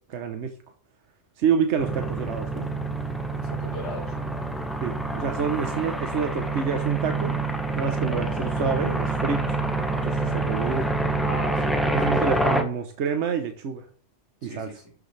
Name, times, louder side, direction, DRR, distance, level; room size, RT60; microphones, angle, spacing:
voice 1, 0.1-0.5 1.4-2.7 4.8-7.4 7.8-9.6 10.0-10.9 11.9-13.9 14.4-14.7, right 6 dB, 85° right, 6 dB, 1.2 m, -28 dB
sound 1, 1.8-12.6, right 2 dB, ahead, 1.2 m, -27 dB
voice 2, 3.3-4.2 11.2-12.2 14.4-14.9, left 1 dB, 80° left, -4 dB, 3.6 m, -39 dB
12.0 x 6.0 x 3.3 m, 0.43 s
omnidirectional pair, 1.2 m